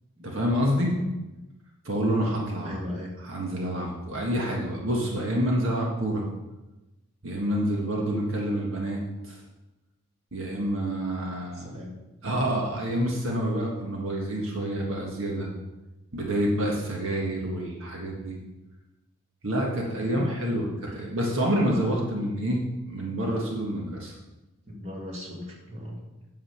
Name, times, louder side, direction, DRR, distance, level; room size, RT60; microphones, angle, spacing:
voice 1, 0.2-0.9 1.8-2.8 3.2-6.2 7.2-9.0 9.2-9.4 10.3-11.8 12.2-15.5 16.1-18.4 19.4-24.2, equal, 60° right, -2 dB, 1.6 m, -28 dB
voice 2, 2.6-3.1 11.6-11.9 20.1-20.3 24.7-26.0, left 1 dB, 30° right, -2 dB, 2.2 m, -37 dB
9.0 x 7.5 x 5.8 m, 1.1 s
head